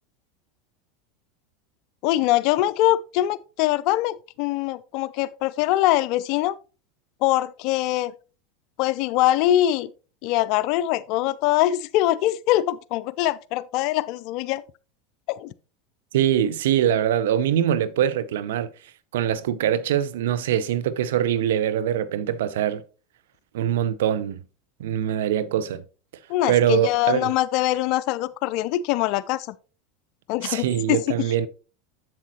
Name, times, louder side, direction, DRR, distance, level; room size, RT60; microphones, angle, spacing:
voice 1, 2.0-6.6 7.2-8.1 8.8-9.9 10.2-14.6 15.3-15.5 26.3-29.5 30.3-31.3, left 14 dB, 60° left, 0.4 m, -23 dB
voice 2, 16.1-18.7 19.1-22.8 23.5-24.4 24.8-25.8 26.5-27.3 30.4-31.5, right 10 dB, 75° right, 0.5 m, -23 dB
7.6 x 7.4 x 2.9 m
hypercardioid pair, 90°, 0 cm